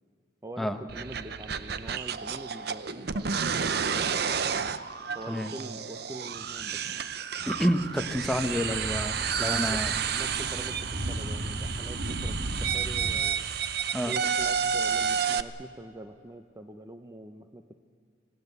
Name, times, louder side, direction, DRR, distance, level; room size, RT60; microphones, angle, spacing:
voice 1, 0.4-4.4 5.1-6.8 9.4-13.4 14.1-17.7, right 1 dB, 15° right, 7 dB, 0.7 m, -44 dB
sound 1, 0.9-15.4, right 7 dB, 55° right, 0.7 m, -31 dB
Thunder / Bicycle, 7.4-13.1, right 1 dB, 70° right, 2.1 m, -36 dB
voice 2, 7.5-9.9 13.9-14.2, equal, ahead, 6 dB, 1.0 m, -29 dB
26.0 x 17.5 x 8.2 m, 2.2 s
head